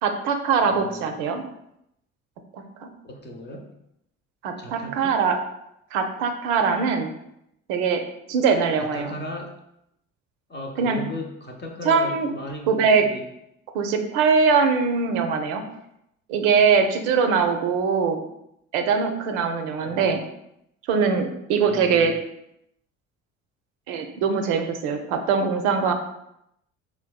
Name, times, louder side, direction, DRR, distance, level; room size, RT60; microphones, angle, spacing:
voice 1, 0.0-1.4 2.5-2.6 4.4-5.4 5.9-7.1 7.7-8.0 8.3-9.1 10.8-11.0 11.8-12.3 12.7-13.1 13.7-15.6 16.3-18.2 18.7-20.2 20.9-22.1 23.9-25.9, right 5 dB, 65° right, 5 dB, 0.5 m, -22 dB
voice 2, 0.6-1.2 3.0-3.7 4.6-5.2 8.8-9.5 10.5-13.2 19.8-20.2 21.6-22.1, left 1 dB, 25° left, 2 dB, 0.7 m, -37 dB
4.5 x 2.2 x 2.3 m, 0.79 s
hypercardioid pair, 55°, 39 cm